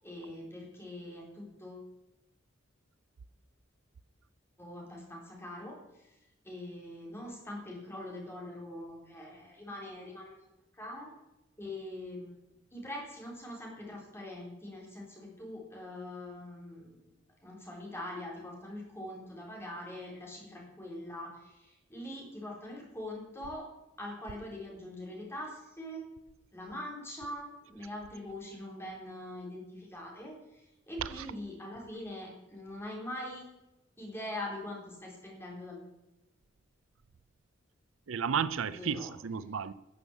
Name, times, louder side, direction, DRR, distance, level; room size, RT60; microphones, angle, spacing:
voice 1, 0.0-1.9 4.6-6.2 6.4-10.4 10.7-11.1 11.6-12.4 12.7-17.0 17.4-23.7 24.0-26.0 26.5-33.4 34.0-35.9 38.7-39.1, left 1 dB, 15° left, -2 dB, 3.9 m, -43 dB
voice 2, 38.1-39.7, right 7 dB, 80° right, 15 dB, 0.5 m, -33 dB
12.5 x 7.1 x 8.2 m, 0.94 s
head